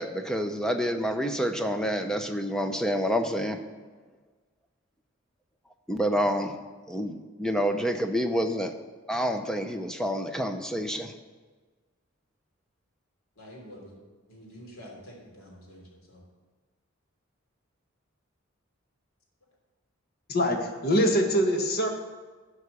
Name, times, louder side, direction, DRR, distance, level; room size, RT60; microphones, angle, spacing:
voice 1, 0.0-3.6 5.9-6.5 6.9-8.7 9.1-11.1, equal, 5° left, 6 dB, 0.6 m, -28 dB
voice 2, 13.4-14.0 14.3-15.8 16.1-16.2, equal, 80° left, -2 dB, 3.3 m, -47 dB
voice 3, 20.3-21.9, equal, 50° left, 3 dB, 1.4 m, -24 dB
12.5 x 4.8 x 7.0 m, 1.4 s
head